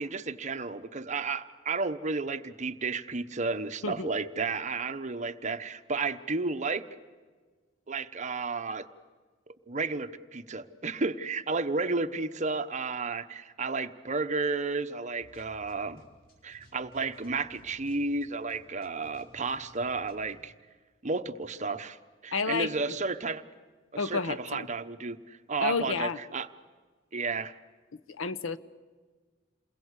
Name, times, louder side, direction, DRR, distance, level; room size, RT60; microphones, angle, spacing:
voice 1, 0.0-6.8 7.9-8.9 9.5-16.0 16.4-20.5 21.0-22.0 22.2-23.4 23.9-26.5 27.1-27.5, right 4 dB, 35° right, 10 dB, 1.0 m, -32 dB
sound 1, 15.2-20.3, right 1 dB, 50° left, 5.1 m, -58 dB
voice 2, 22.3-22.7 24.0-24.7 25.6-26.2 27.9-28.6, left 5 dB, 85° left, 16 dB, 0.9 m, -30 dB
28.5 x 21.5 x 8.3 m, 1.4 s
head